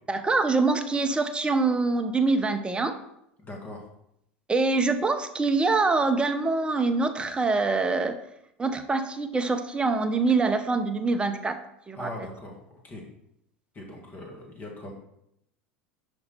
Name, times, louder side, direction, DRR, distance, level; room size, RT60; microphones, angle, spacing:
voice 1, 0.1-2.9 4.5-8.2 8.6-11.5 11.9-12.1, right 3 dB, 15° right, 7 dB, 0.7 m, -24 dB
voice 2, 3.4-3.9 11.9-12.6 12.8-13.1 13.7-14.9, left 1 dB, 30° left, 0 dB, 2.0 m, -40 dB
5.6 x 5.3 x 4.2 m, 0.78 s
hypercardioid pair, 85°, 6 cm